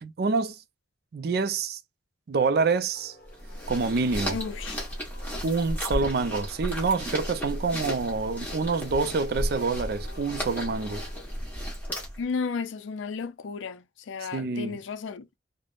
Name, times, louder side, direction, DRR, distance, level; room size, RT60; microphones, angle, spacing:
voice 1, 0.0-0.6 1.1-1.8 2.3-3.1 3.7-4.4 5.4-11.0 14.2-14.8, right 4 dB, 55° right, 0.4 m, -27 dB
sound 1, 2.4-11.1, left 2 dB, 60° left, 0.7 m, -52 dB
sound 2, 3.3-12.3, equal, 10° left, 1.0 m, -34 dB
voice 2, 4.3-4.8 12.2-15.3, left 5 dB, 80° left, 0.4 m, -33 dB
3.3 x 2.1 x 2.3 m
head